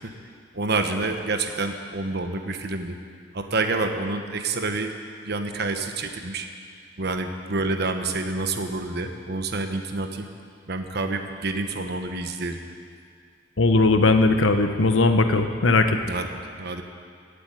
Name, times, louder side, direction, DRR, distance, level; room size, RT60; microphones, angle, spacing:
voice 1, 0.5-3.0 3.3-4.9 5.2-6.5 7.0-10.3 10.7-12.6 16.1-16.3 16.6-16.8, right 3 dB, 55° right, 6 dB, 1.2 m, -28 dB
voice 2, 13.6-16.0, left 3 dB, 80° left, 7 dB, 1.1 m, -19 dB
16.0 x 8.3 x 9.2 m, 2.2 s
head